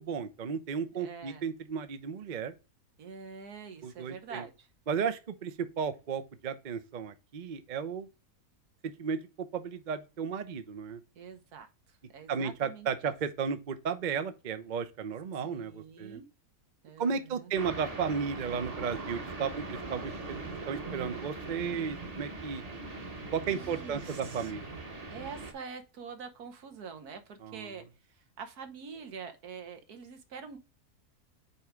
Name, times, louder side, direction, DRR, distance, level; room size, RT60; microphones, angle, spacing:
voice 1, 0.0-2.5 3.8-4.4 4.9-8.1 8.8-9.2 9.5-11.0 12.3-16.2 17.0-22.6 23.3-24.7 27.4-27.7, right 6 dB, 45° right, 0.6 m, -34 dB
voice 2, 1.0-1.4 3.0-4.7 11.1-12.9 15.3-16.3 16.8-17.5 23.5-24.6 25.1-27.8 28.2-30.6, right 6 dB, 75° right, 1.7 m, -45 dB
sound 1, 17.6-25.5, right 3 dB, 25° right, 1.1 m, -41 dB
5.4 x 4.7 x 5.1 m
omnidirectional pair, 1.6 m